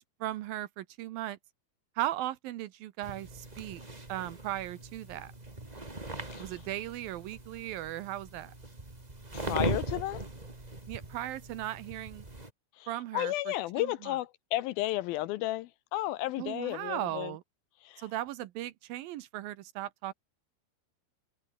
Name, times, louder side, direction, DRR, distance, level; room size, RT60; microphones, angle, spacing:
voice 1, 0.2-1.4 2.0-3.8 4.1-5.3 6.4-8.5 10.9-12.3 12.9-13.3 13.8-14.1 16.4-17.4 18.0-20.1, right 14 dB, 75° right, 2.5 m, -37 dB
sound 1, 3.0-12.5, right 2 dB, 10° right, 2.2 m, -40 dB
voice 2, 6.3-6.6 9.3-10.2 12.7-17.3 17.8-18.1, left 16 dB, 80° left, 2.3 m, -33 dB
omnidirectional pair, 4.6 m